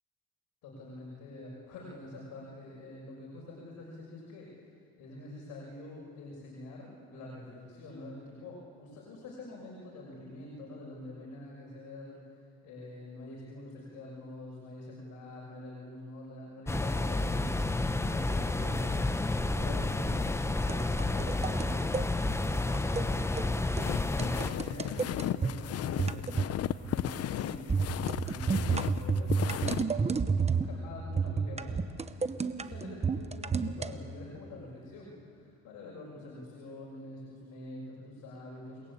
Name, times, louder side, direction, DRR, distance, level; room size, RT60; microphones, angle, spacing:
voice 1, 0.6-4.7 5.0-12.3 12.6-19.0 19.4-23.2 24.0-26.6 26.9-27.7 28.2-31.7 32.5-38.9, left 2 dB, 75° left, -3 dB, 6.4 m, -46 dB
sound 1, 16.7-24.5, left 2 dB, 10° left, 0.9 m, -30 dB
sound 2, 20.6-22.1 22.7-23.1 23.4-23.5 23.8-23.9 24.2-25.6 26.0-26.6 26.8-27.1 27.7-30.8 31.2-33.9, right 5 dB, 20° right, 1.0 m, -31 dB
sound 3, 23.8-29.8, left 11 dB, 50° left, 0.8 m, -35 dB
29.5 x 21.0 x 8.6 m, 2.4 s
cardioid pair, 105°, 31 cm